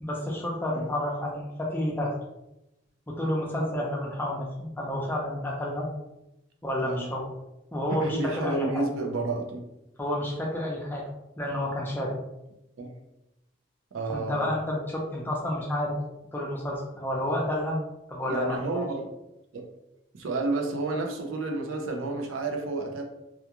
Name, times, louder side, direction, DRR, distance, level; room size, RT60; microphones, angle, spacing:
voice 1, 0.0-2.1 3.1-5.9 6.6-7.3 7.7-8.9 10.0-11.0 11.4-12.2 14.1-16.0 16.3-17.8 18.1-18.9, left 1 dB, 10° left, -3 dB, 0.4 m, -30 dB
voice 2, 6.8-7.1 7.9-9.7 12.8-13.0 13.9-14.5 18.3-19.1 19.5-19.7 20.1-23.0, right 3 dB, 85° right, 3 dB, 0.5 m, -31 dB
2.3 x 2.3 x 2.8 m, 0.90 s
head